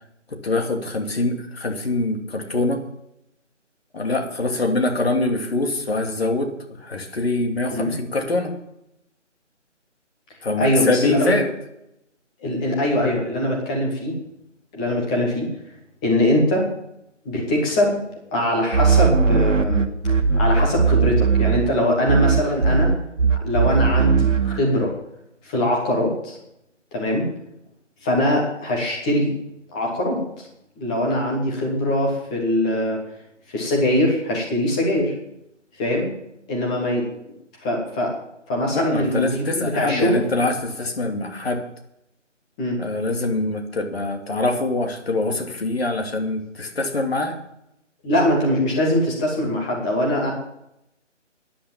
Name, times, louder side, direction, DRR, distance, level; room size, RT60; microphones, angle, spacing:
voice 1, 0.4-2.8 3.9-8.5 10.4-11.5 38.7-41.6 42.8-47.4, left 2 dB, 55° left, 3 dB, 2.7 m, -24 dB
voice 2, 10.6-11.4 12.4-14.1 14.7-15.5 16.0-16.7 17.2-18.0 18.3-22.9 23.4-24.9 25.4-26.4 26.9-27.3 28.0-29.3 29.7-30.2 30.8-33.0 33.5-35.1 35.8-36.1 36.5-37.0 37.6-38.1 38.5-40.2 42.6-42.8 48.0-50.3, left 1 dB, 5° left, -2 dB, 1.0 m, -22 dB
sound 1, 18.7-21.8 22.1-24.6, right 5 dB, 85° right, 1.5 m, -18 dB
13.0 x 10.0 x 7.2 m, 0.82 s
figure-of-eight pair, 165°, 37 cm